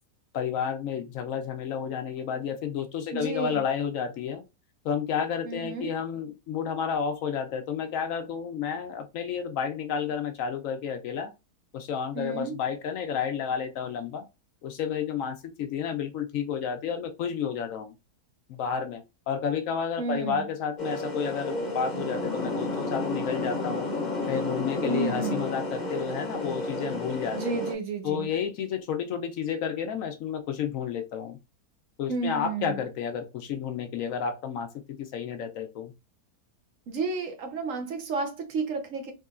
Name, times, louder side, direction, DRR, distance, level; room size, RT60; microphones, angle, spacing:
voice 1, 0.3-4.4 4.8-11.3 11.7-14.3 14.6-17.9 18.5-23.9 24.3-27.6 28.0-31.4 32.0-35.9, left 7 dB, 70° left, 0.8 m, -31 dB
voice 2, 3.1-3.6 5.4-6.0 12.1-12.6 20.0-20.5 24.8-25.4 27.3-28.3 32.1-32.8 36.9-39.1, right 4 dB, 60° right, 1.2 m, -31 dB
sound 1, 20.8-27.7, left 2 dB, 40° left, 0.7 m, -31 dB
3.7 x 3.0 x 2.3 m
omnidirectional pair, 1.7 m